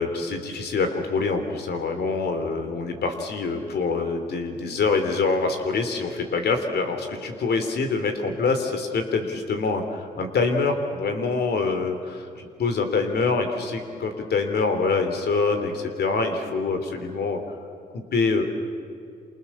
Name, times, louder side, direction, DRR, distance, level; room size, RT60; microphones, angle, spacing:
voice 1, 0.0-17.4 17.9-18.4, left 4 dB, 80° left, 6 dB, 3.5 m, -25 dB
28.5 x 28.0 x 7.3 m, 2.4 s
cardioid pair, 55°, 17 cm